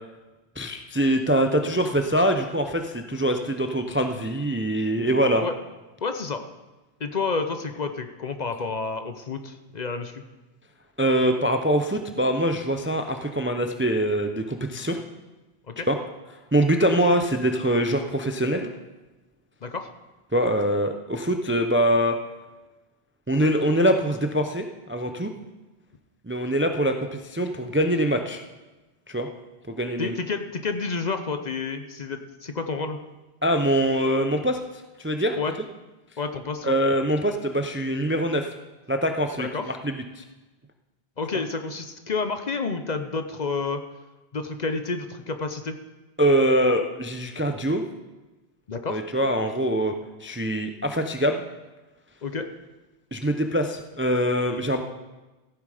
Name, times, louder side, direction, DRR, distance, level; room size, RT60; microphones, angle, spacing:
voice 1, 0.6-5.5 11.0-15.0 15.9-16.0 16.5-18.7 20.3-22.2 23.3-25.3 26.2-28.4 29.1-29.3 29.7-30.1 33.4-34.6 35.0-35.4 36.6-38.5 38.9-40.2 46.2-47.8 48.9-49.9 50.2-51.4 53.1-54.8, right 1 dB, 15° right, 6 dB, 0.4 m, -23 dB
voice 2, 6.0-6.4 7.0-10.2 15.7-15.9 19.6-19.9 30.0-33.0 35.4-35.5 36.2-36.7 39.4-39.7 41.2-43.8 44.3-45.7 48.7-49.0 52.2-52.5, left 4 dB, 45° left, 7 dB, 0.7 m, -30 dB
15.0 x 7.2 x 4.9 m, 1.1 s
omnidirectional pair, 1.1 m